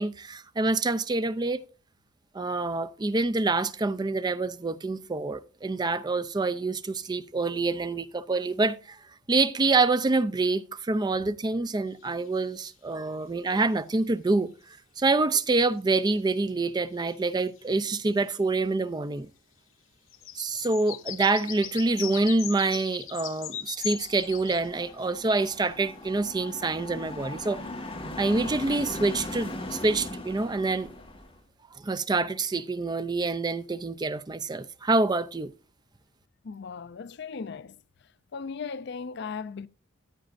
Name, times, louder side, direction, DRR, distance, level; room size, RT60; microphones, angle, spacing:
voice 1, 0.0-1.6 2.3-9.0 9.3-14.5 15.0-19.3 20.3-27.6 28.2-30.9 31.8-35.5, right 3 dB, 20° right, 0.4 m, -26 dB
sound 1, 12.0-12.1 16.5-16.6 17.0-17.6 20.1-25.0 25.5-25.6, left 12 dB, 90° left, 0.9 m, -38 dB
sound 2, 23.9-31.4, left 1 dB, 25° left, 1.8 m, -39 dB
voice 2, 36.4-37.8 38.3-39.7, left 5 dB, 60° left, 0.5 m, -37 dB
14.5 x 9.0 x 2.5 m
head